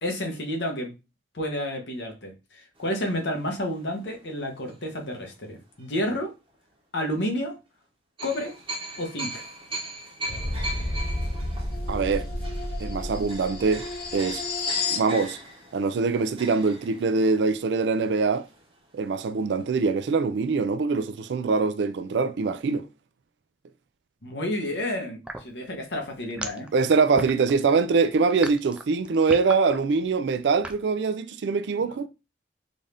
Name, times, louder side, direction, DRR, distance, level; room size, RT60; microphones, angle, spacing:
voice 1, 0.0-0.9 1.3-6.3 6.9-7.5 8.2-8.5 9.0-9.4 24.2-26.7 31.8-32.1, left 1 dB, 80° left, 1.1 m, -30 dB
sound 1, 2.8-5.2 5.8-6.0 8.2-18.9 19.2-19.3 19.6-19.8, right 1 dB, 30° right, 0.9 m, -40 dB
sound 2, 10.3-15.1, left 2 dB, 60° left, 0.9 m, -30 dB
voice 2, 11.9-12.3 12.8-13.9 14.1-14.4 14.9-15.4 15.7-18.5 18.9-22.9 26.7-32.1, right 4 dB, 80° right, 0.4 m, -23 dB
sound 3, 25.2-30.8, right 1 dB, 5° right, 0.4 m, -36 dB
3.9 x 2.5 x 3.3 m
head